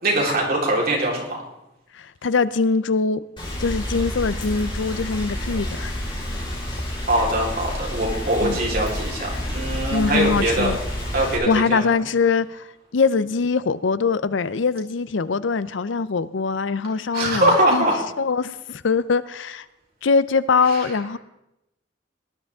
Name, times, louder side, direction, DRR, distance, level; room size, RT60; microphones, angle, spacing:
voice 1, 0.0-1.4 6.5-6.6 7.1-10.7 11.0-11.9 17.1-18.0 20.7-20.9, right 1 dB, 55° right, 4.0 m, -22 dB
voice 2, 1.9-3.2 3.6-6.0 8.4-8.6 9.9-10.8 11.5-12.7 12.9-17.9 18.2-19.7 20.0-21.2, left 4 dB, 70° left, 0.5 m, -22 dB
Rain, 3.4-11.4, left 1 dB, 25° left, 4.6 m, -29 dB
18.5 x 11.5 x 3.6 m
head